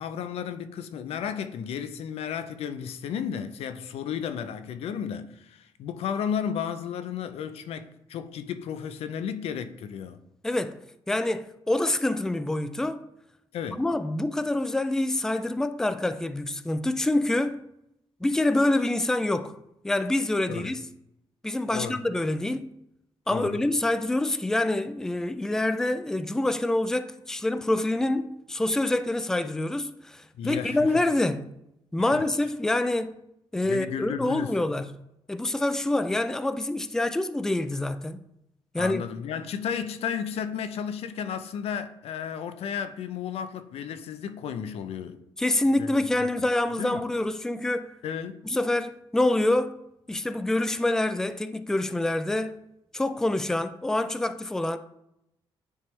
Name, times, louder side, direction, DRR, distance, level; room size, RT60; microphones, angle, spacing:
voice 1, 0.0-10.2 13.5-13.8 20.5-20.7 21.7-22.0 23.3-23.6 30.4-30.9 32.0-32.3 33.7-34.6 38.8-45.2 45.8-46.5 46.8-47.0 48.0-48.4, left 8 dB, 85° left, 0.5 m, -33 dB
voice 2, 10.4-10.8 11.1-13.0 13.8-17.6 18.2-19.6 19.8-20.8 21.4-22.7 23.3-31.4 31.9-33.2 33.5-34.9 35.3-38.2 38.7-39.0 45.4-47.9 48.5-49.8 50.1-52.6 52.9-54.8, left 1 dB, 5° left, 0.3 m, -26 dB
9.5 x 3.6 x 3.2 m
cardioid pair, 115°, 10 cm